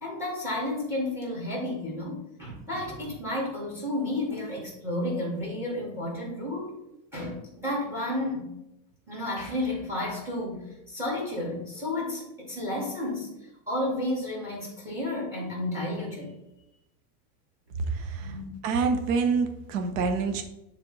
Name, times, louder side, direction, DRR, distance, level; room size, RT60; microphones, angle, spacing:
voice 1, 0.0-6.7 7.1-8.5 9.1-13.3 13.7-16.3 18.2-18.5, left 1 dB, 5° right, -3 dB, 2.2 m, -32 dB
voice 2, 17.9-18.3 18.6-20.4, right 4 dB, 55° right, 6 dB, 1.0 m, -26 dB
9.7 x 3.4 x 4.0 m, 0.87 s
supercardioid pair, 175°, 45 cm